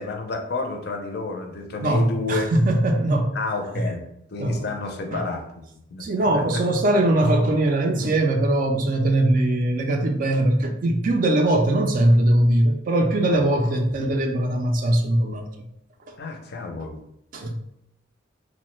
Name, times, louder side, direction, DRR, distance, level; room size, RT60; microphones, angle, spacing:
voice 1, 0.0-2.5 3.3-4.0 4.3-5.6 5.9-6.1 6.3-6.6 13.3-13.4 16.2-17.0, left 3 dB, 50° left, 3 dB, 0.4 m, -30 dB
voice 2, 1.8-3.4 3.8-3.9 4.4-4.6 5.1-5.2 6.0-15.5 17.3-17.6, right 1 dB, 40° right, 4 dB, 0.3 m, -21 dB
3.0 x 2.1 x 3.1 m, 0.77 s
head